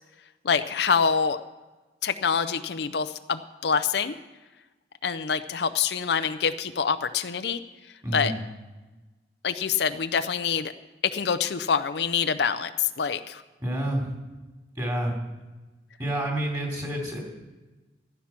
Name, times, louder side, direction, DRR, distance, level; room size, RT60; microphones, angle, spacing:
voice 1, 0.4-1.4 2.0-4.2 5.0-7.6 8.1-8.3 9.4-10.7 11.1-13.4, left 6 dB, 65° left, 11 dB, 0.5 m, -26 dB
voice 2, 8.0-8.4 13.6-14.1 14.8-15.1 16.0-17.2, right 1 dB, 20° right, -1 dB, 3.3 m, -28 dB
14.5 x 10.0 x 6.0 m, 1.2 s
head